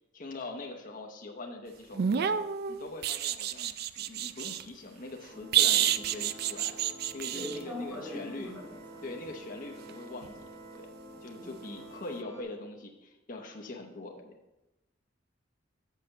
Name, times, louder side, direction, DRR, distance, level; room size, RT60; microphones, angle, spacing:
voice 1, 0.1-2.3 2.7-6.8 7.1-8.5 9.0-10.9 11.2-14.3, left 2 dB, 45° left, 2 dB, 0.8 m, -43 dB
sound 1, 1.9-4.6 5.5-7.6 10.2-10.4, right 10 dB, 55° right, 0.3 m, -28 dB
sound 2, 5.3-12.4, right 1 dB, 20° left, 3.1 m, -49 dB
voice 2, 7.3-9.1 11.3-11.6, left 1 dB, 10° right, -5 dB, 2.5 m, -41 dB
6.3 x 5.6 x 6.4 m, 1.0 s
head